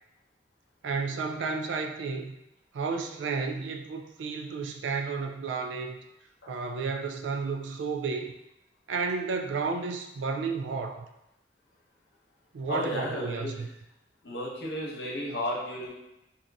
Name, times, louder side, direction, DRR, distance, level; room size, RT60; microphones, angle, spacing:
voice 1, 0.8-2.4 2.7-6.0 6.5-8.3 8.9-11.0 12.5-13.7, right 4 dB, 80° right, 4 dB, 0.4 m, -32 dB
voice 2, 12.7-13.6 14.2-15.9, left 1 dB, 65° left, -4 dB, 0.9 m, -33 dB
2.7 x 2.5 x 3.4 m, 0.90 s
head